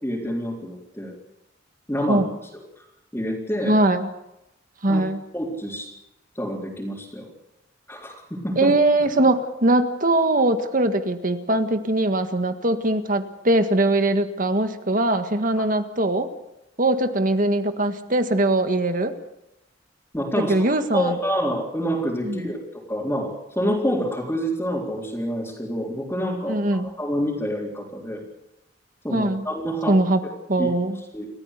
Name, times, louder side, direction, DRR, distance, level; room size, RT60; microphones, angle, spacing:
voice 1, 0.0-1.1 1.9-2.2 2.5-2.6 3.1-3.8 4.9-5.0 5.3-5.9 6.3-7.3 7.9-8.7 20.1-28.2 29.0-30.0 30.6-30.7 31.1-31.3, equal, 10° left, -4 dB, 3.9 m, -27 dB
voice 2, 3.7-4.1 4.8-5.2 8.6-16.3 16.8-19.1 20.5-21.2 22.2-22.5 26.5-26.9 29.1-29.5 29.9-30.2 30.5-31.0, right 2 dB, 45° right, 8 dB, 1.8 m, -21 dB
29.0 x 14.5 x 8.3 m, 0.89 s
head